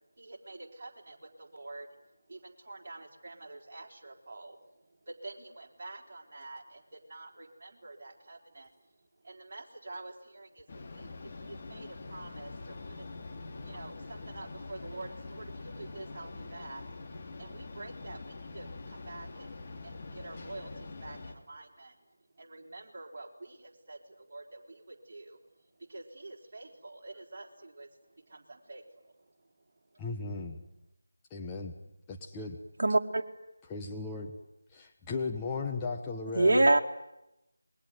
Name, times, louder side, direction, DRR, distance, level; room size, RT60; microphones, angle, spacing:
voice 1, 0.2-8.9 9.2-16.8 17.4-25.4 25.7-30.0, right 2 dB, 40° right, -1 dB, 4.3 m, -48 dB
sound 1, 10.7-21.3, left 3 dB, 30° left, 3.4 m, -44 dB
voice 2, 30.0-30.6 31.3-31.7 32.1-32.6 33.6-34.4 34.7-36.7, left 4 dB, 10° left, 1 dB, 1.5 m, -36 dB
voice 3, 32.8-33.2 36.3-36.8, right 2 dB, 55° right, 1 dB, 2.5 m, -22 dB
27.5 x 21.5 x 9.6 m, 0.89 s
figure-of-eight pair, 165°, 0 cm